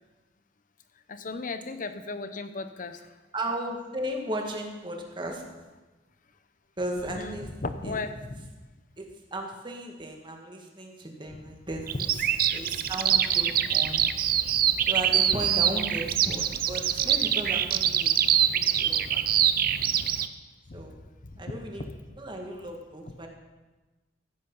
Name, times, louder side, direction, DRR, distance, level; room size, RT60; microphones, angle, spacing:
voice 1, 1.1-3.1 6.9-8.5 20.7-20.8 21.2-21.4, left 3 dB, 45° left, 10 dB, 0.8 m, -36 dB
voice 2, 3.3-5.4 6.8-7.5 7.8-8.0 9.0-12.1 12.5-14.1 14.9-18.2 18.5-19.2 20.7-21.0 21.4-23.3, right 1 dB, 25° right, 2 dB, 1.8 m, -35 dB
Bird vocalization bird call bird song, 11.9-20.3, right 9 dB, 50° right, 0.6 m, -24 dB
15.0 x 8.4 x 5.6 m, 1.2 s
head